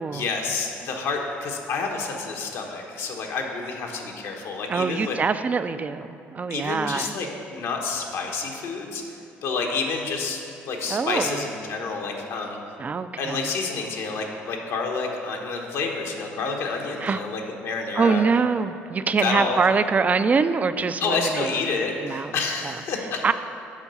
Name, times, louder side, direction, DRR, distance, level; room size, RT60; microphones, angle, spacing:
voice 1, 0.1-5.2 6.5-9.0 9.4-10.4 10.6-12.6 13.2-18.2 19.1-19.6 21.0-23.3, left 4 dB, 70° left, 1 dB, 1.1 m, -29 dB
voice 2, 4.7-7.1 10.9-11.4 12.8-13.5 17.0-17.2 18.0-21.5 22.0-22.3 23.2-23.3, right 5 dB, 30° right, 12 dB, 0.4 m, -24 dB
7.2 x 4.6 x 6.7 m, 2.7 s
supercardioid pair, 85°, 5 cm